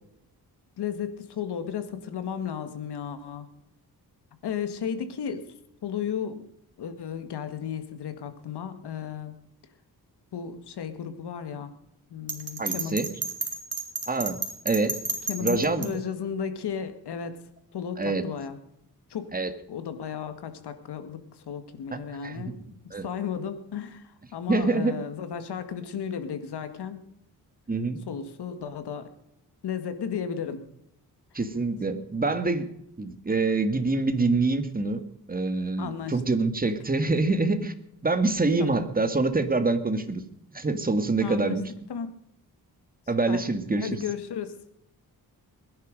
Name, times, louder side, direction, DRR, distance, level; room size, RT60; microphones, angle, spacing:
voice 1, 0.8-3.5 4.4-5.4 5.8-6.4 6.8-9.3 10.3-11.7 12.1-13.0 15.3-17.4 17.7-18.6 19.1-19.3 19.7-22.6 23.0-27.0 28.1-29.1 29.6-30.7 35.8-36.2 38.6-38.8 41.2-41.6 41.9-42.1 43.3-43.4 43.8-44.5, left 7 dB, 90° left, 9 dB, 1.9 m, -34 dB
Bell, 12.3-15.9, right 3 dB, 40° right, 3.3 m, -31 dB
voice 2, 12.6-13.1 14.1-14.4 14.7-15.0 15.4-15.9 18.0-18.2 19.3-19.5 22.2-22.4 22.9-23.1 24.5-25.0 27.7-28.0 31.3-32.7 33.0-35.0 35.3-37.7 38.0-40.2 40.5-41.6 43.1-44.0, right 3 dB, 20° right, 9 dB, 1.9 m, -25 dB
21.0 x 11.0 x 5.3 m, 0.76 s
cardioid pair, 95°, 39 cm